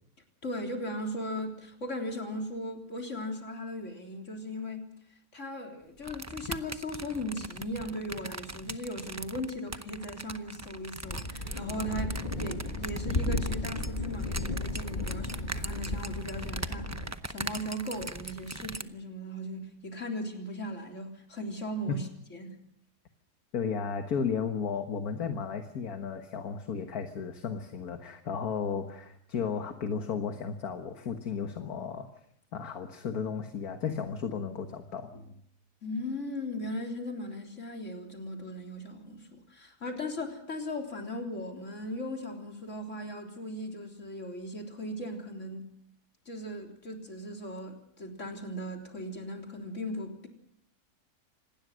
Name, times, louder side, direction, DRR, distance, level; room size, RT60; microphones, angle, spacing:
voice 1, 0.4-4.9 5.3-22.6 35.8-45.7 46.3-50.3, left 1 dB, 50° left, 2 dB, 4.0 m, -38 dB
sound 1, 6.0-18.8, right 2 dB, 15° right, 0.5 m, -40 dB
Thunder, 11.0-17.1, left 2 dB, 30° left, 1.7 m, -34 dB
voice 2, 23.5-32.1 32.5-35.4, left 6 dB, 70° left, 6 dB, 1.9 m, -34 dB
26.5 x 19.5 x 6.3 m, 0.70 s
omnidirectional pair, 1.7 m